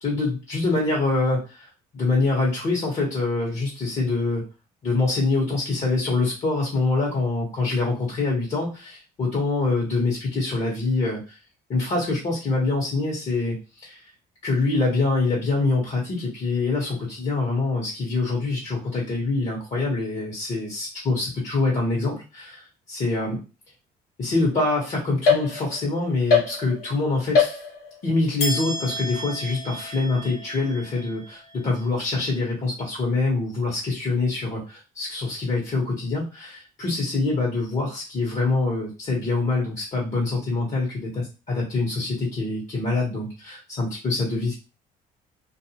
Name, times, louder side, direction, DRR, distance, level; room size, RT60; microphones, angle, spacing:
voice 1, 0.0-4.4 4.8-11.4 11.7-14.0 14.4-22.6 22.9-23.4 24.2-27.6 28.0-44.6, left 3 dB, 45° left, -4 dB, 1.2 m, -25 dB
sound 1, 25.3-25.9 26.3-27.0 27.3-28.0 28.4-31.9, left 5 dB, 65° left, 1.2 m, -26 dB
2.6 x 2.1 x 2.8 m, 0.30 s
cardioid pair, 110°, 17 cm